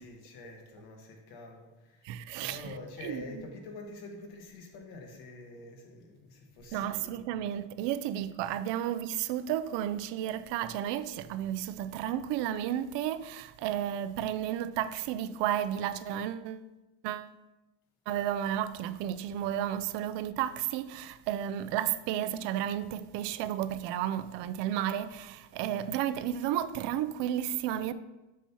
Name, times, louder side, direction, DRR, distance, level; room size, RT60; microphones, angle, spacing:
voice 1, 0.0-7.2, left 3 dB, 60° left, 1.4 m, -47 dB
voice 2, 2.0-2.7 3.0-3.4 6.7-16.7 17.0-17.3 18.1-27.9, right 11 dB, 85° right, 0.6 m, -32 dB
7.3 x 6.9 x 2.9 m
cardioid pair, 180°, 42 cm